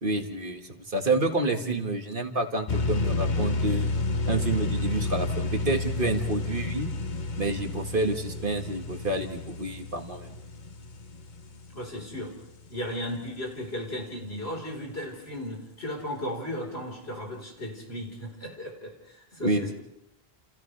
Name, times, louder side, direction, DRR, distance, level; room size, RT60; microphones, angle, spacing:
voice 1, 0.0-3.9 4.3-6.9 7.4-10.4 19.4-19.7, right 2 dB, 55° right, 4 dB, 2.1 m, -29 dB
sound 1, 2.7-12.2, left 3 dB, 50° left, 1.0 m, -30 dB
voice 2, 11.7-12.3 12.7-19.7, left 1 dB, 80° left, 0 dB, 4.8 m, -35 dB
30.0 x 29.5 x 3.4 m, 0.84 s
omnidirectional pair, 1.0 m